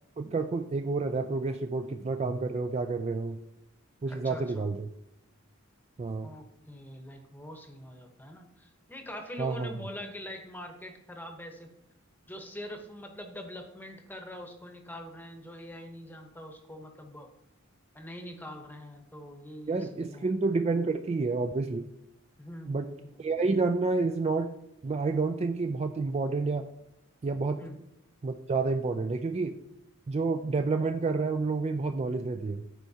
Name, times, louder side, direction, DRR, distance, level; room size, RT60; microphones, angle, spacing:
voice 1, 0.2-3.4 4.0-4.9 6.0-6.3 9.4-9.7 19.7-21.9 22.7-22.9 23.2-24.5 24.8-26.7 27.2-27.6 28.2-29.5 30.1-32.6, right 3 dB, 30° right, 7 dB, 0.3 m, -29 dB
voice 2, 4.1-4.7 6.2-11.7 12.3-17.3 17.9-20.3 22.4-23.2 27.6-27.8, equal, 10° left, 4 dB, 0.9 m, -44 dB
13.5 x 4.5 x 2.8 m, 0.85 s
head